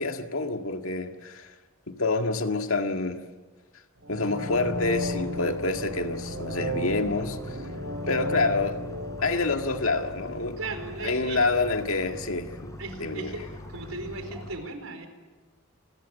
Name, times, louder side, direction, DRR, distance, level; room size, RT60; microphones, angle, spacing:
voice 1, 0.0-1.5 1.9-3.2 4.1-7.4 8.1-8.8 9.2-10.6 11.0-12.7 13.0-13.3, left 3 dB, 85° left, 1.9 m, -27 dB
sound 1, 4.0-10.8 11.2-11.3, left 1 dB, 70° right, 5.6 m, -35 dB
sound 2, 4.5-14.5, left 1 dB, 15° left, 4.0 m, -42 dB
voice 2, 10.6-11.5 12.8-13.4 13.7-15.1, right 3 dB, 90° right, 4.3 m, -36 dB
28.5 x 21.0 x 7.3 m
head